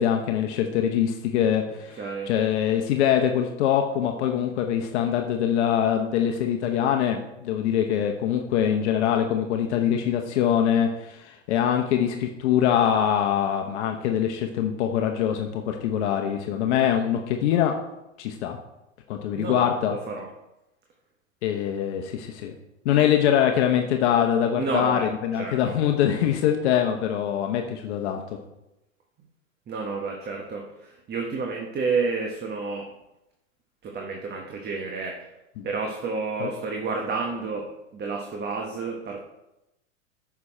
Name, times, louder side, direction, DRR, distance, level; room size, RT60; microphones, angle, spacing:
voice 1, 0.0-17.8 18.2-18.6 19.1-20.0 21.4-22.5 22.8-28.2 35.6-35.7 36.4-36.5, left 9 dB, 60° left, 4 dB, 1.0 m, -23 dB
voice 2, 2.0-2.3 19.3-20.3 24.6-25.8 29.7-32.9 33.8-35.2 35.6-39.2, right 4 dB, 25° right, 1 dB, 1.3 m, -30 dB
9.5 x 6.1 x 4.4 m, 0.92 s
hypercardioid pair, 100°, 39 cm